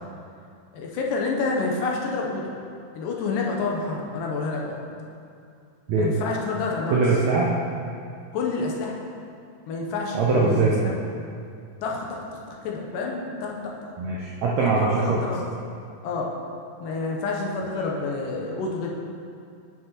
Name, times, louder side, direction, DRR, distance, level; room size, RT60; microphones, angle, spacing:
voice 1, 0.7-2.6 2.9-4.8 6.0-7.0 8.3-9.0 9.7-11.0 11.8-13.6 13.8-13.9 14.6-14.7 15.0-15.4 16.0-16.3 16.8-18.9, left 3 dB, 80° left, -1 dB, 2.3 m, -28 dB
voice 2, 6.9-7.5 10.1-10.9 14.0-15.2, right 4 dB, 80° right, -4 dB, 1.6 m, -22 dB
9.4 x 5.9 x 2.9 m, 2.4 s
omnidirectional pair, 4.0 m